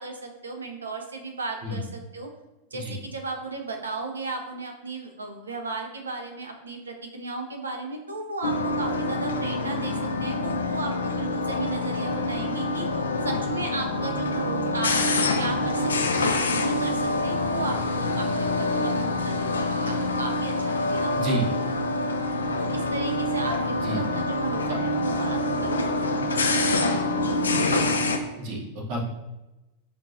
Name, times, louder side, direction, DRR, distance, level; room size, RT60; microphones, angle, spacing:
voice 1, 0.0-2.3 2.7-12.9 13.2-14.9 15.4-21.5 22.7-26.0, right 3 dB, 75° right, 4 dB, 0.6 m, -35 dB
sound 1, 8.4-28.2, left 2 dB, 70° left, 0.3 m, -26 dB
voice 2, 28.4-29.0, right 2 dB, 45° right, -1 dB, 1.0 m, -29 dB
5.2 x 2.7 x 2.6 m, 1.0 s
figure-of-eight pair, 90°, 0 cm